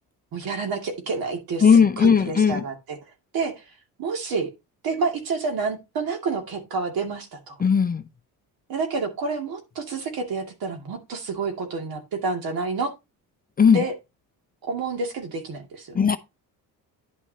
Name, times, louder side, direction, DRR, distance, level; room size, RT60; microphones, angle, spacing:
voice 1, 0.3-3.0 3.3-3.6 4.0-4.5 4.8-7.6 8.7-12.9 13.7-13.9 14.6-16.1, right 4 dB, 70° right, 2.3 m, -29 dB
voice 2, 1.6-2.6 7.6-8.0 13.6-13.8 15.9-16.2, left 6 dB, 25° left, 0.5 m, -17 dB
10.5 x 6.2 x 2.8 m
cardioid pair, 105°, 37 cm